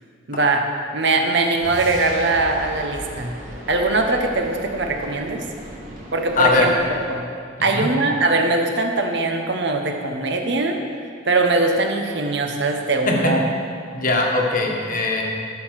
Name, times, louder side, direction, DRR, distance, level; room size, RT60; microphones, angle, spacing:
voice 1, 0.3-0.7 0.9-3.3 3.7-5.4 6.1-6.7 7.1-7.3 7.6-10.8 11.2-13.4, right 3 dB, 55° right, 3 dB, 1.0 m, -21 dB
sound 1, 1.6-7.2, equal, 40° right, 2.4 m, -37 dB
voice 2, 6.4-6.7 7.6-7.9 13.1-13.3 13.9-15.2, left 2 dB, 40° left, 0 dB, 1.3 m, -20 dB
12.0 x 5.7 x 6.4 m, 2.2 s
head